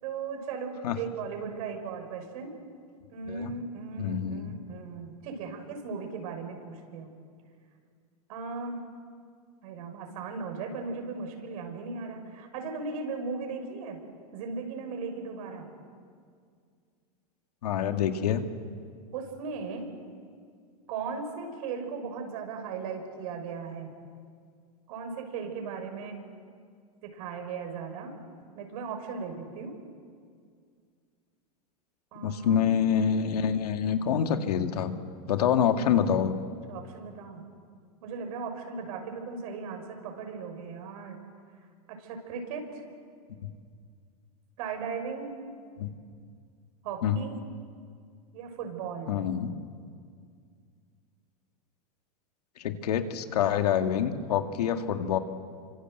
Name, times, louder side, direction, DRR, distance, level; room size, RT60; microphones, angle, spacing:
voice 1, 0.0-2.6 3.1-7.1 8.3-8.8 9.6-14.0 14.3-15.7 19.1-19.9 20.9-23.9 24.9-26.2 27.0-28.1 28.5-29.7 32.1-32.6 36.7-37.4 38.0-41.2 41.9-42.8 44.6-45.4 46.8-47.4 48.3-49.2, right 5 dB, 65° right, 4 dB, 6.5 m, -37 dB
voice 2, 4.0-4.5 17.6-18.4 32.2-34.9 35.3-36.4 43.4-43.5 45.8-45.9 47.0-47.2 49.1-49.5 52.6-55.2, left 8 dB, 80° left, 6 dB, 2.2 m, -26 dB
28.0 x 25.5 x 8.0 m, 2.1 s
hypercardioid pair, 125°, 20 cm